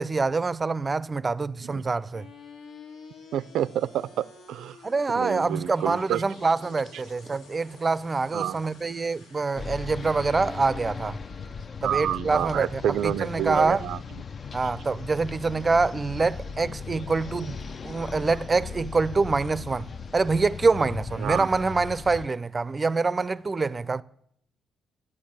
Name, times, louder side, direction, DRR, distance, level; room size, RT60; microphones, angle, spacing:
voice 1, 0.0-2.3 4.8-11.2 11.8-13.8 14.5-17.6 17.8-19.9 20.1-24.0, right 4 dB, 30° right, 0.5 m, -25 dB
sound 1, 2.1-12.2, left 4 dB, 90° left, 2.2 m, -50 dB
voice 2, 3.3-4.8 5.1-6.2 8.3-8.6 11.8-14.0 21.2-21.5, right 11 dB, 80° right, 0.5 m, -28 dB
sound 2, 9.6-22.3, left 5 dB, 45° left, 0.6 m, -38 dB
12.0 x 9.8 x 8.8 m
cardioid pair, 90°, 0 cm